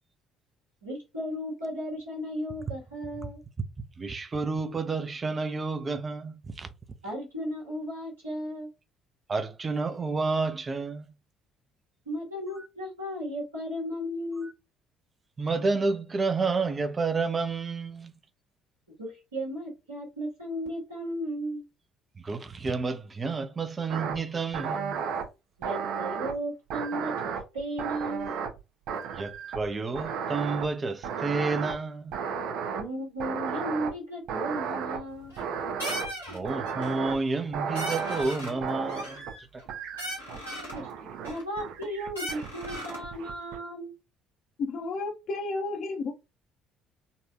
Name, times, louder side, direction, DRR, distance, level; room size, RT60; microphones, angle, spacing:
voice 1, 0.8-3.4 7.0-8.7 12.0-14.5 19.0-21.6 25.6-28.4 32.7-35.3 40.3-40.5 40.7-43.9, equal, 80° right, 1.4 m, -35 dB
voice 2, 4.0-6.7 9.3-11.1 15.4-18.1 22.2-25.0 29.1-32.1 36.3-39.3, right 4 dB, 30° right, 0.6 m, -30 dB
sound 1, 23.9-24.2 24.5-25.2 25.6-26.3 26.7-28.6 28.9-29.7 30.0-30.7 31.0-31.7 32.1-32.8 33.2-33.9 34.3-35.0 35.4-36.1 36.4-37.2 37.5-38.2 38.6-39.3 39.7-40.4 40.7-41.3 41.6-43.6, right 6 dB, 55° right, 0.9 m, -33 dB
sound 2, 35.1-35.5 35.8-36.4 36.7-37.0 37.4-37.5 37.7-38.6 38.9-39.7 40.0-40.8 41.2-41.9 42.1-43.1, equal, 90° left, 1.3 m, -38 dB
voice 3, 44.6-46.1, left 3 dB, 50° left, 0.6 m, -32 dB
4.1 x 2.4 x 2.7 m
figure-of-eight pair, 50°, 0 cm